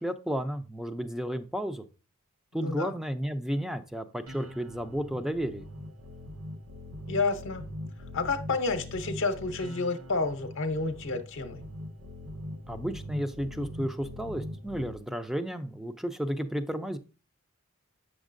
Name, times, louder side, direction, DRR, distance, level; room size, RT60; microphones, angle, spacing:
voice 1, 0.0-1.9 2.5-5.7 12.7-17.0, equal, ahead, 9 dB, 0.4 m, -32 dB
voice 2, 2.6-2.9 7.1-7.6 8.1-11.6, left 3 dB, 60° left, 7 dB, 0.8 m, -30 dB
sound 1, 4.3-14.9, left 1 dB, 85° right, 1.1 m, -42 dB
8.1 x 6.2 x 2.5 m, 0.33 s
head